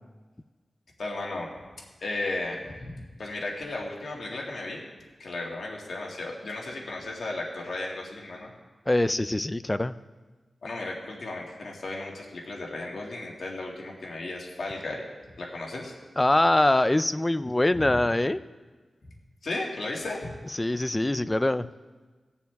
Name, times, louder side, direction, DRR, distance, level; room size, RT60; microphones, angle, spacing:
voice 1, 1.0-1.5 2.0-4.8 5.2-8.5 10.6-15.1 15.4-15.9 17.7-18.0 19.0-19.1 19.4-20.3, left 2 dB, 70° left, -1 dB, 2.3 m, -35 dB
voice 2, 8.9-9.9 16.2-18.4 20.5-21.7, left 1 dB, 20° left, 13 dB, 0.4 m, -23 dB
19.0 x 7.0 x 3.5 m, 1.3 s
wide cardioid pair, 95°, 0 cm